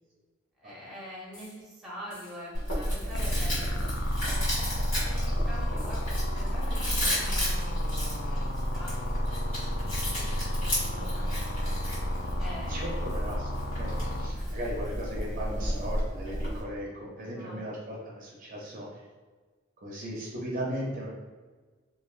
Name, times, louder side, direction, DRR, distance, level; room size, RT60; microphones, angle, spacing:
voice 1, 0.6-3.8 4.2-11.8 12.4-13.0 14.3-14.6 17.1-17.6, equal, ahead, -6 dB, 0.7 m, -46 dB
sound 1, 1.3-1.6 2.1-2.5 3.2-3.5 4.2-4.6 5.8-6.1 6.9-7.3, left 1 dB, 20° left, 1.2 m, -53 dB
Chewing mastication, 2.5-16.6, equal, 80° left, 1.4 m, -33 dB
sound 2, 3.1-14.3, equal, 55° left, 0.4 m, -31 dB
voice 2, 12.7-19.0 19.8-21.1, equal, 40° right, -4 dB, 0.5 m, -37 dB
3.0 x 2.4 x 2.4 m, 1.4 s
head